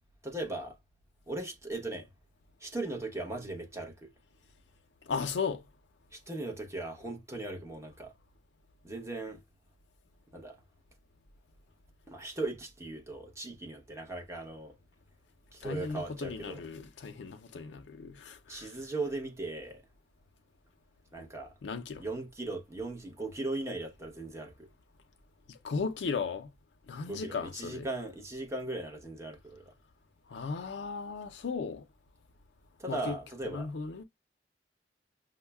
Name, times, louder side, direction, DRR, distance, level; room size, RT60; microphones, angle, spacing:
voice 1, 0.2-0.8 1.3-2.1 2.6-4.1 6.1-8.1 8.8-9.4 10.3-10.6 12.1-14.8 15.5-16.6 18.5-19.8 21.1-21.5 22.0-24.7 27.1-29.7 32.8-33.7, right 2 dB, 15° right, 0.8 m, -38 dB
voice 2, 5.1-5.6 15.6-18.8 21.6-22.0 25.5-26.5 26.9-27.9 30.3-31.8 32.9-33.2 33.4-34.0, left 5 dB, 75° left, 0.4 m, -36 dB
5.3 x 2.0 x 2.2 m
head